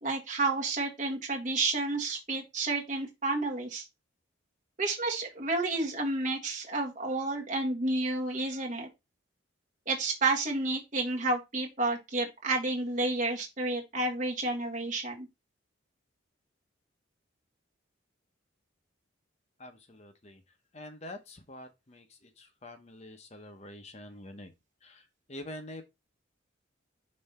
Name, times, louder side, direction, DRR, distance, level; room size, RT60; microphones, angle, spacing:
voice 1, 0.0-3.8 4.8-8.9 9.9-15.3, right 2 dB, 40° right, 1.5 m, -30 dB
voice 2, 19.6-20.4 20.7-24.5 24.8-25.8, left 1 dB, 35° left, 0.8 m, -46 dB
5.4 x 3.3 x 5.3 m
head